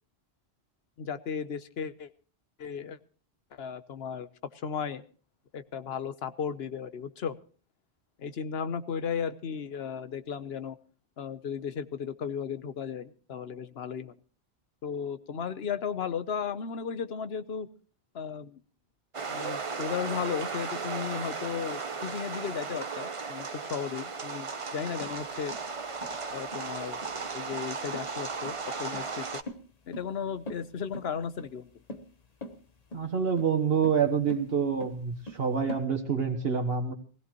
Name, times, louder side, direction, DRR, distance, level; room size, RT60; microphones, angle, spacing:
voice 1, 1.0-2.1 2.6-3.0 3.5-4.3 4.5-5.0 5.5-7.3 8.2-10.8 11.2-14.1 14.8-17.7 18.1-18.6 19.3-25.5 26.3-28.5 28.8-29.4 29.9-31.7, left 7 dB, 80° left, 12 dB, 1.1 m, -35 dB
sound 1, 19.1-29.4, right 4 dB, 35° right, 0.8 m, -36 dB
sound 2, 25.0-35.8, left 1 dB, 40° left, 1.2 m, -44 dB
voice 2, 32.9-36.9, right 6 dB, 75° right, 5 dB, 1.6 m, -27 dB
19.5 x 16.5 x 3.0 m, 0.38 s
omnidirectional pair, 1.0 m